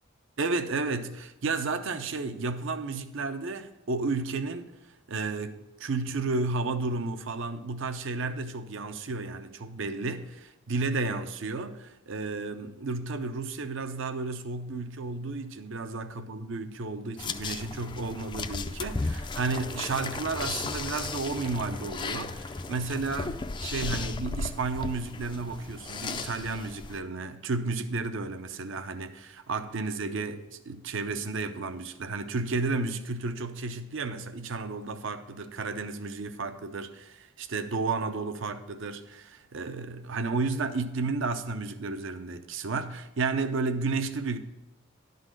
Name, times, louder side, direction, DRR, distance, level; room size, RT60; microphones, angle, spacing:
voice 1, 0.4-4.7 5.1-44.4, right 3 dB, 65° right, 0.6 m, -32 dB
sound 1, 17.2-27.0, left 3 dB, 25° left, 0.4 m, -35 dB
11.5 x 4.0 x 6.4 m
head